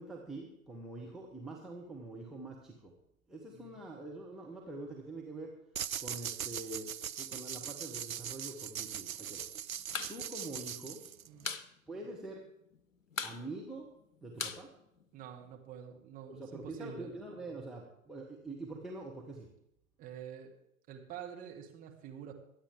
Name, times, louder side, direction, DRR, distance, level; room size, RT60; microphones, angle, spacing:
voice 1, 0.0-2.9 3.3-5.5 6.0-9.4 10.1-11.0 11.9-12.4 13.2-13.9 14.2-14.7 16.3-19.5, right 2 dB, ahead, -3 dB, 1.0 m, -45 dB
sound 1, 5.8-11.5, right 9 dB, 80° right, 0.5 m, -41 dB
sound 2, 9.8-10.2 10.4-10.5 10.8-11.7 12.0-12.1 12.4-12.8 13.1-15.5, left 5 dB, 70° left, 1.0 m, -39 dB
voice 2, 15.1-17.1 20.0-20.5 20.9-22.3, right 9 dB, 20° right, 1 dB, 1.8 m, -47 dB
23.0 x 8.7 x 3.7 m, 0.78 s
figure-of-eight pair, 115°, 42 cm